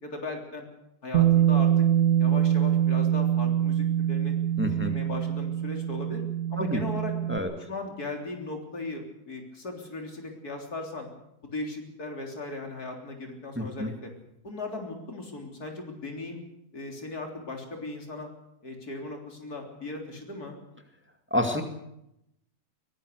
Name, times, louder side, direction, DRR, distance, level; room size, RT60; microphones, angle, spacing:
voice 1, 0.0-0.7 1.0-1.9 2.2-4.3 4.7-6.2 6.5-7.1 7.7-11.1 11.4-14.1 14.4-16.4 16.7-18.3 18.6-20.6, left 2 dB, 80° left, 2 dB, 4.1 m, -37 dB
Bass guitar, 1.1-7.4, right 10 dB, 65° right, 1.9 m, -24 dB
voice 2, 4.6-4.9 6.6-6.8 7.3-7.5 13.6-13.9 21.3-21.6, left 1 dB, 5° right, 4 dB, 2.1 m, -28 dB
22.5 x 18.0 x 6.7 m, 0.82 s
omnidirectional pair, 1.6 m